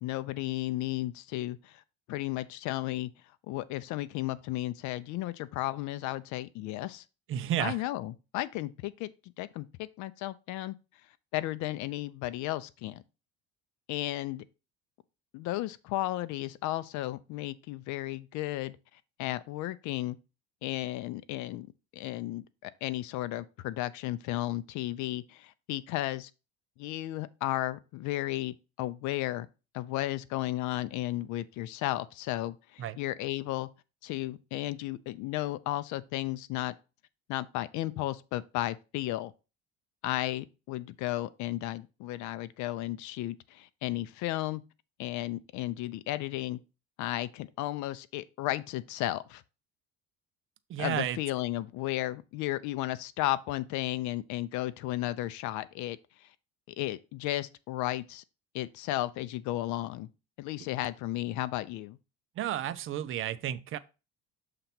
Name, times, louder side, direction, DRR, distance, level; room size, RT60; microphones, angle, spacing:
voice 1, 0.0-1.8 2.1-3.1 3.5-7.0 7.6-9.1 9.4-10.7 11.3-13.0 13.9-14.4 15.3-18.8 19.2-20.2 20.6-21.7 21.9-26.3 26.8-29.5 29.7-33.7 34.0-36.7 37.3-39.3 40.0-44.6 45.0-46.6 47.0-49.4 50.8-56.3 56.8-58.2 58.5-60.1 60.4-62.0, left 16 dB, 70° left, 0.5 m, -34 dB
voice 2, 7.3-7.8 32.8-33.0 50.7-51.2 62.4-63.8, right 11 dB, 45° right, 0.6 m, -32 dB
6.7 x 2.9 x 5.8 m
cardioid pair, 130°, 30 cm